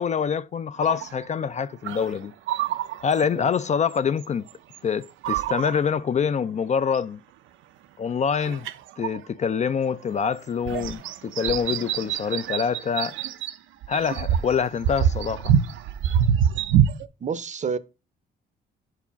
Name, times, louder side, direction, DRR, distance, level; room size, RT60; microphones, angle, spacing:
voice 1, 0.0-2.3 3.0-4.5 4.8-7.2 8.0-8.7 9.0-13.2 13.9-15.6, left 6 dB, 35° left, 0.4 m, -25 dB
sound 1, 0.8-1.3 1.8-3.6 3.9-4.8 5.0-6.0 6.9-7.0 8.3-9.2 10.2-10.3 10.7-13.6 13.8-17.1, right 9 dB, 80° right, 0.5 m, -25 dB
voice 2, 17.2-17.8, right 6 dB, 40° right, 0.6 m, -29 dB
4.9 x 4.8 x 5.7 m
cardioid pair, 90°, 20 cm